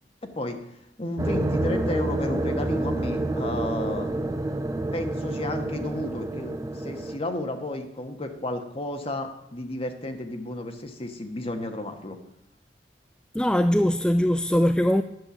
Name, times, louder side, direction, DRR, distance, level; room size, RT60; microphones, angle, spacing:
voice 1, 0.2-0.6 1.0-4.1 4.9-12.2, left 1 dB, 35° left, 5 dB, 1.2 m, -32 dB
sound 1, 1.2-7.2, right 1 dB, 20° right, 0.7 m, -28 dB
voice 2, 13.3-15.0, equal, 5° left, 9 dB, 0.3 m, -21 dB
11.0 x 6.6 x 7.1 m, 0.83 s
head